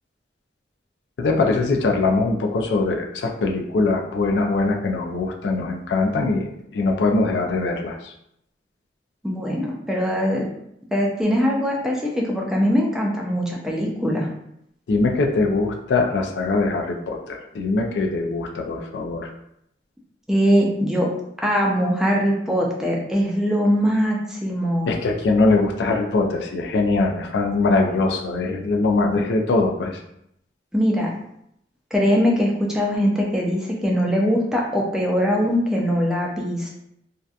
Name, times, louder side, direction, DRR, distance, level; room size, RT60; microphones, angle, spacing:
voice 1, 1.2-8.1 14.9-19.3 24.9-30.0, left 3 dB, 70° left, 2 dB, 0.4 m, -22 dB
voice 2, 9.2-10.5 10.9-14.3 20.3-21.1 21.4-24.9 30.7-31.1 31.9-36.9, equal, 5° right, -2 dB, 0.4 m, -21 dB
2.7 x 2.2 x 2.4 m, 0.76 s
head